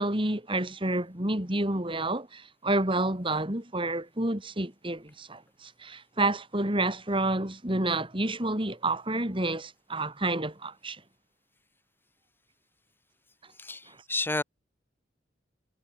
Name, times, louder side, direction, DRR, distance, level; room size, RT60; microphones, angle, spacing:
voice 1, 0.0-11.0 13.9-14.0, right 2 dB, 30° right, 3.9 m, -29 dB
voice 2, 14.1-14.4, left 2 dB, 10° left, 2.8 m, -29 dB
head